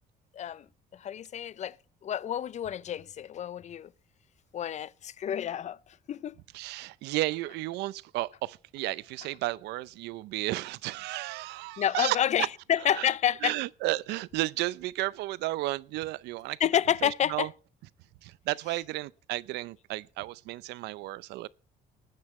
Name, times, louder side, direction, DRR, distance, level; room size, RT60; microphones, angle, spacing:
voice 1, 0.3-0.7 0.9-1.8 2.0-3.9 4.5-6.4 11.8-13.5 16.6-17.5, left 10 dB, 45° left, 0.5 m, -29 dB
voice 2, 6.5-12.5 12.9-13.1 13.4-16.6 17.0-17.5 18.2-21.5, right 18 dB, 85° right, 0.6 m, -33 dB
20.0 x 9.7 x 3.2 m
cardioid pair, 110°, 17 cm